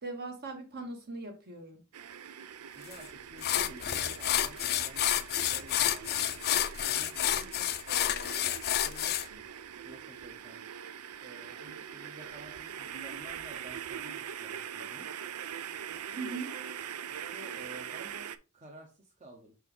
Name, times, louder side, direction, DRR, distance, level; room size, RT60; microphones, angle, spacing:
voice 1, 0.0-1.8 16.2-16.5, right 3 dB, 45° right, 1.5 m, -40 dB
sound 1, 1.9-18.4, right 9 dB, 90° right, 0.5 m, -43 dB
voice 2, 2.7-6.4 6.8-8.4 8.7-9.5 9.8-10.6 11.2-15.1 17.1-19.5, right 1 dB, 30° right, 1.0 m, -52 dB
sound 2, 2.9-3.0 3.4-9.3, left 11 dB, 45° left, 0.4 m, -29 dB
6.0 x 4.4 x 3.6 m
head